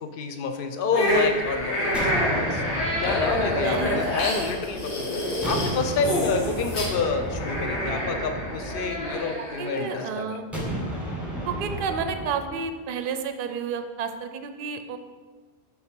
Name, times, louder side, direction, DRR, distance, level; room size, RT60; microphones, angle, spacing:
voice 1, 0.0-10.4, left 4 dB, 60° left, 6 dB, 0.8 m, -29 dB
sound 1, 0.9-10.1, left 1 dB, 85° left, 1.7 m, -28 dB
sound 2, 1.9-5.0 5.4-9.7 10.5-12.6, right 1 dB, ahead, 1.3 m, -33 dB
voice 2, 3.6-4.0 9.6-10.4 11.5-15.0, right 6 dB, 60° right, 8 dB, 0.7 m, -31 dB
7.0 x 4.0 x 5.2 m, 1.5 s
omnidirectional pair, 1.1 m